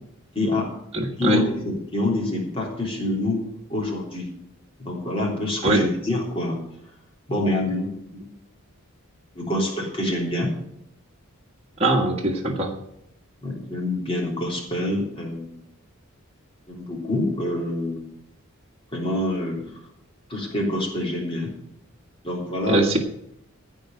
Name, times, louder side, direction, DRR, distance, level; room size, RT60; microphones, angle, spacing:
voice 1, 0.3-0.7 1.2-3.4 3.7-4.3 4.8-6.6 7.3-8.3 9.4-10.5 13.4-15.6 16.7-18.1 18.9-19.7 20.3-21.5 22.2-22.8, left 1 dB, 25° left, -2 dB, 3.6 m, -26 dB
voice 2, 0.9-1.4 5.6-5.8 11.8-12.7 22.7-23.0, right 1 dB, 25° right, -1 dB, 1.6 m, -21 dB
14.5 x 4.9 x 8.9 m, 0.76 s
head